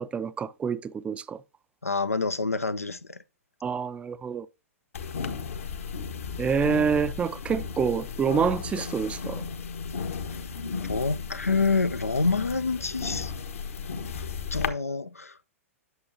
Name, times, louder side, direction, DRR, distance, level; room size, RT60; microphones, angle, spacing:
voice 1, 0.0-1.4 3.6-4.5 6.4-9.4, right 6 dB, 15° right, 0.5 m, -27 dB
voice 2, 1.8-3.2 10.8-13.3 14.5-15.4, left 4 dB, 85° left, 0.6 m, -27 dB
sound 1, 4.9-14.7, left 5 dB, 70° left, 1.2 m, -34 dB
11.0 x 6.9 x 2.7 m
figure-of-eight pair, 105°, 8 cm